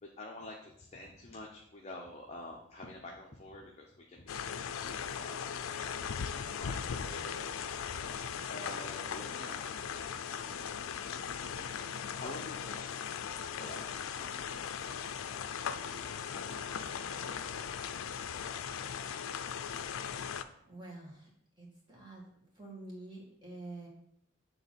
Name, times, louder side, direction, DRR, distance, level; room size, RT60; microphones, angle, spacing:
voice 1, 0.0-5.5 6.2-7.7 8.5-10.6 12.1-14.9 15.8-17.4, left 2 dB, 30° left, -1 dB, 0.7 m, -49 dB
sound 1, 4.3-20.4, left 7 dB, 75° left, 0.4 m, -38 dB
voice 2, 20.6-21.3 21.6-22.2 22.5-23.9, right 2 dB, 20° right, -4 dB, 2.0 m, -47 dB
6.9 x 3.5 x 5.7 m, 0.73 s
head